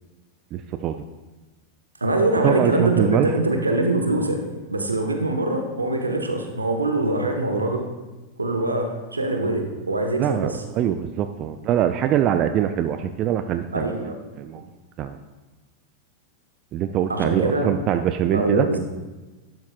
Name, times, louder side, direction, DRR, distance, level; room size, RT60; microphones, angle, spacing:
voice 1, 0.5-1.0 2.4-3.3 10.2-14.0 14.4-14.6 15.0-15.2 16.7-18.7, right 10 dB, 35° right, 9 dB, 0.4 m, -23 dB
voice 2, 2.0-4.4 4.7-7.8 8.4-10.6 13.7-14.2 17.1-17.7 18.3-18.8, right 2 dB, 80° right, 4 dB, 1.2 m, -23 dB
11.5 x 11.5 x 2.4 m, 1.2 s
figure-of-eight pair, 90°, 0 cm